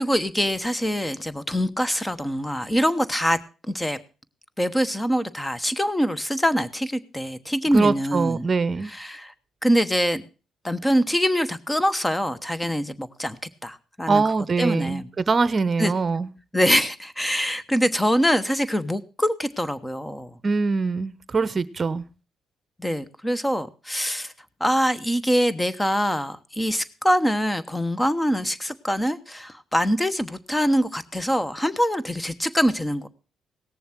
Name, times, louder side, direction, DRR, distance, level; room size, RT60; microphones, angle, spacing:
voice 1, 0.0-3.4 3.7-4.0 4.6-8.4 8.8-9.3 9.6-10.3 10.6-13.4 13.6-14.2 14.6-15.1 15.8-15.9 16.5-20.3 22.8-24.3 24.6-33.1, equal, 10° left, 1.1 m, -24 dB
voice 2, 7.7-8.9 14.1-16.3 20.4-22.0, right 4 dB, 35° right, 0.9 m, -23 dB
17.5 x 7.0 x 6.0 m
cardioid pair, 90°, 0 cm